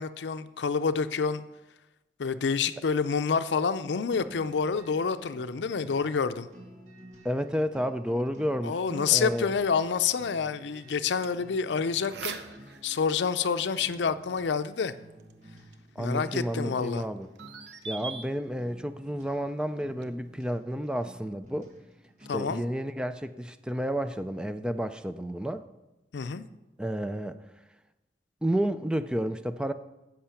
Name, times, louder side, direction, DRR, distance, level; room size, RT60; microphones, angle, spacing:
voice 1, 0.0-1.4 2.2-6.5 8.6-12.4 12.8-14.9 16.0-17.0 22.3-22.6 26.1-26.5, left 6 dB, 85° left, 12 dB, 0.5 m, -28 dB
sound 1, 4.1-22.6, equal, 45° right, 2.1 m, -52 dB
voice 2, 7.2-9.5 16.0-17.3 17.9-21.7 22.3-25.6 26.8-27.4 28.4-29.7, equal, 5° right, 10 dB, 0.3 m, -31 dB
sound 2, 9.6-20.6, right 5 dB, 75° right, 0.8 m, -47 dB
10.5 x 7.6 x 5.8 m, 1.0 s
head